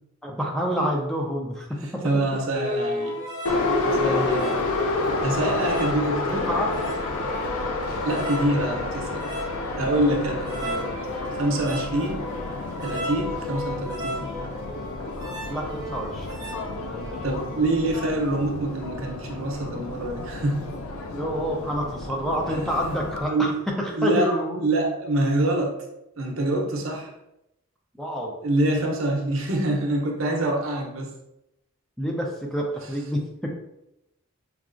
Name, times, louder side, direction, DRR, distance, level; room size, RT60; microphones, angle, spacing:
voice 1, 0.2-1.7 4.0-4.7 6.3-6.7 11.2-11.6 15.5-16.5 16.9-17.3 21.1-23.5 23.8-24.7 28.0-28.3 32.0-33.6, equal, ahead, -1 dB, 0.4 m, -28 dB
voice 2, 2.0-3.2 3.8-4.7 5.2-6.5 8.0-9.3 9.8-10.9 11.3-12.3 12.8-14.3 17.2-20.7 22.5-22.6 23.3-23.6 23.9-24.3 24.6-25.8 26.2-27.1 28.4-31.1, right 1 dB, 70° right, 1 dB, 0.7 m, -25 dB
sound 1, 2.5-17.9, left 1 dB, 20° right, 0.9 m, -35 dB
Subway metro underground, 3.4-23.3, left 2 dB, 75° left, 0.4 m, -30 dB
4.7 x 2.3 x 2.5 m, 0.87 s
head